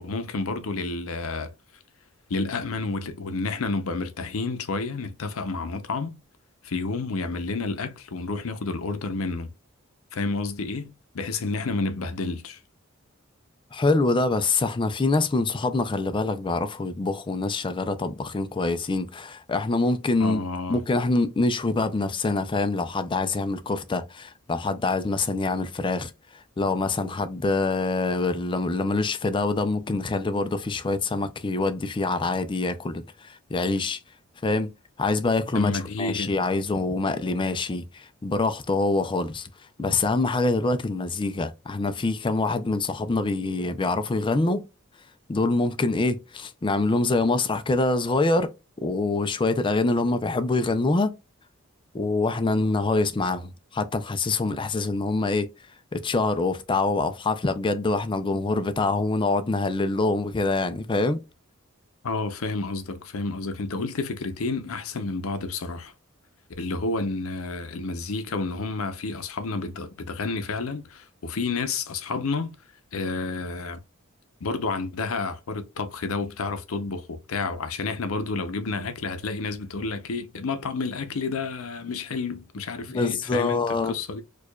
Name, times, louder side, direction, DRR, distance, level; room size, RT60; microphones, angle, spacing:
voice 1, 0.0-1.5 2.3-6.2 6.6-9.5 10.1-12.6 20.2-20.8 35.5-36.3 62.0-65.9 66.6-72.5 72.9-73.8 74.4-83.6 83.9-84.2, left 3 dB, 80° left, 0.6 m, -30 dB
voice 2, 13.7-20.4 20.7-26.1 26.6-34.0 34.4-34.7 35.0-35.7 36.0-39.5 39.8-44.6 45.3-48.5 48.8-51.1 51.9-55.5 55.9-61.2 82.9-84.0, left 3 dB, 25° left, 0.4 m, -25 dB
4.6 x 2.4 x 2.2 m
head